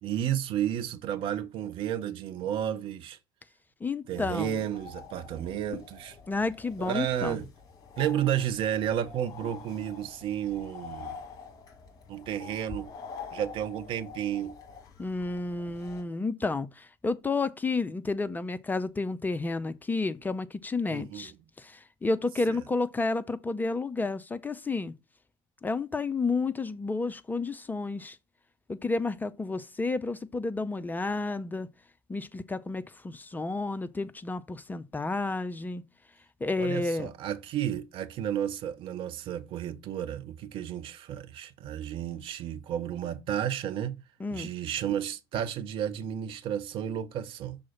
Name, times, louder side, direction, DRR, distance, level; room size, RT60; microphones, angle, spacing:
voice 1, 0.0-3.2 4.1-6.2 6.8-7.5 8.0-11.2 12.1-12.9 13.3-14.6 20.9-21.3 22.5-22.6 36.6-44.0 44.3-47.6, right 10 dB, 45° right, 0.8 m, -32 dB
voice 2, 3.8-4.6 6.3-7.4 15.0-21.3 21.6-24.9 25.6-28.2 28.7-31.7 32.1-35.8 36.4-37.1 44.2-44.5, left 3 dB, 15° left, 0.5 m, -31 dB
sound 1, 4.7-16.0, left 6 dB, 30° left, 1.8 m, -46 dB
6.2 x 3.8 x 5.7 m
figure-of-eight pair, 65°, 12 cm